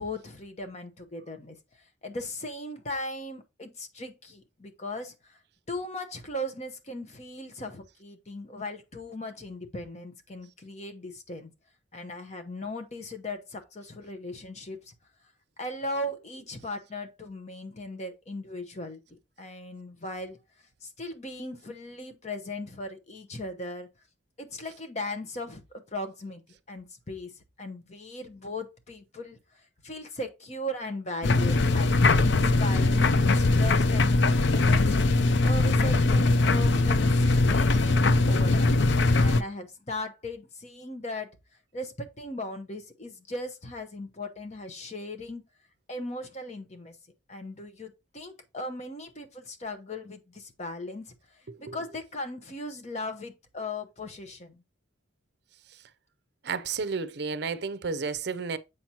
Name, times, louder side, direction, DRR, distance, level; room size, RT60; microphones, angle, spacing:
voice 1, 0.0-1.6 2.0-5.4 5.7-11.5 11.9-14.9 15.6-20.4 20.8-23.9 24.4-26.4 26.7-29.4 29.8-35.0 35.4-37.1 37.4-38.7 39.2-41.4 41.7-45.4 45.9-46.9 47.3-51.1 51.6-54.6, left 1 dB, 35° left, 0.8 m, -38 dB
sound 1, 31.2-39.4, left 2 dB, 60° left, 0.4 m, -21 dB
voice 2, 56.4-58.6, right 5 dB, 55° right, 0.5 m, -31 dB
7.8 x 5.8 x 2.9 m
head